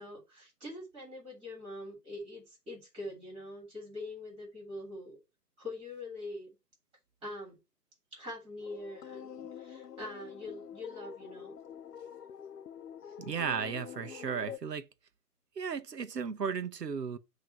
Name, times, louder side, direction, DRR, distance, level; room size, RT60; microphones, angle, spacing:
voice 1, 0.0-5.2 5.6-6.5 7.2-7.6 8.1-11.6 13.0-13.1, left 1 dB, 10° right, 3.1 m, -44 dB
sound 1, 8.6-14.6, left 8 dB, 75° left, 0.7 m, -46 dB
voice 2, 13.2-14.9 15.6-17.2, right 6 dB, 80° right, 1.0 m, -35 dB
7.9 x 3.1 x 5.3 m
figure-of-eight pair, 145°, 48 cm